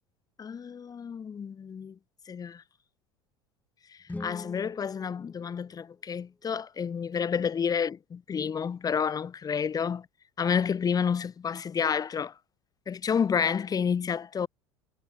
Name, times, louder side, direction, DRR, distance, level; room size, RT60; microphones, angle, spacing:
voice 1, 0.4-1.9 2.3-2.6 4.2-10.1 10.4-12.3 12.9-14.5, left 7 dB, 25° left, 1.2 m, -29 dB
sound 1, 4.0-6.2, left 2 dB, 10° left, 4.3 m, -43 dB
figure-of-eight pair, 70°, 14 cm